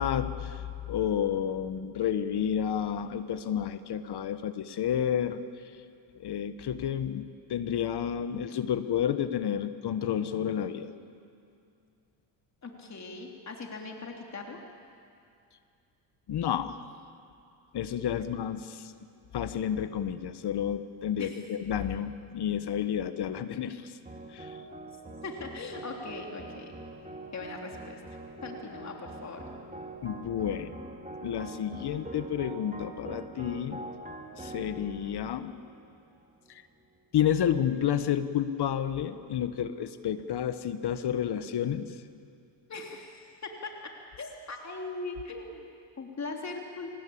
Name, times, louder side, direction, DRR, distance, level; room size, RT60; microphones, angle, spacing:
voice 1, 0.0-5.4 6.2-10.9 16.3-16.8 17.7-18.9 19.3-24.0 24.3-24.6 30.0-30.7 31.2-33.8 34.4-35.5 36.5-36.6 37.1-41.9, left 9 dB, 55° left, 11 dB, 1.3 m, -30 dB
voice 2, 12.6-14.6 21.2-21.4 25.2-26.7 27.3-28.0 28.4-29.4 42.7-43.2 43.6-43.9 44.2-45.7 46.0-46.9, left 3 dB, 35° left, 1 dB, 3.4 m, -40 dB
sound 1, 24.1-36.5, right 2 dB, 15° right, 2.6 m, -44 dB
25.5 x 19.5 x 8.7 m, 2.4 s
supercardioid pair, 80°, 48 cm